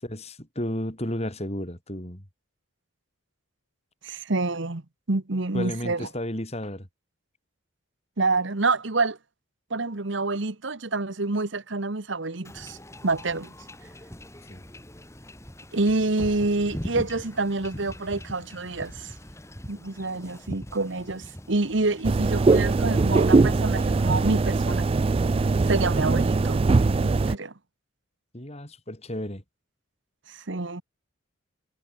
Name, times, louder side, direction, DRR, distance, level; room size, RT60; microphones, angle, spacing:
voice 1, 0.0-2.3 5.5-6.9 14.5-14.6 28.3-29.4, left 1 dB, 30° left, 4.5 m, -33 dB
voice 2, 4.0-4.8 5.1-6.1 8.2-9.2 9.7-12.8 13.0-13.5 15.7-19.1 19.7-24.8 25.7-27.5 30.3-30.8, right 3 dB, 60° right, 1.3 m, -27 dB
Wind / Ocean / Boat Water vehicle, 12.4-24.0, equal, 15° left, 3.1 m, -41 dB
sound 1, 22.0-27.4, right 3 dB, 25° right, 0.3 m, -21 dB
head